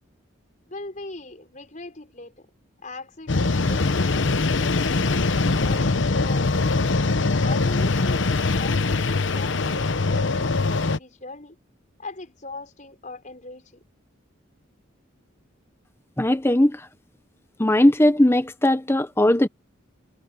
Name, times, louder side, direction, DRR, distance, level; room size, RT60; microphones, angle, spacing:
voice 1, 0.7-2.5 2.8-5.2 5.6-6.6 7.4-11.6 12.0-13.7, left 2 dB, 40° left, 5.6 m, -40 dB
sound 1, 3.3-11.0, left 3 dB, 65° left, 0.9 m, -22 dB
voice 2, 16.2-16.9 17.6-19.5, left 1 dB, 10° left, 0.8 m, -19 dB
head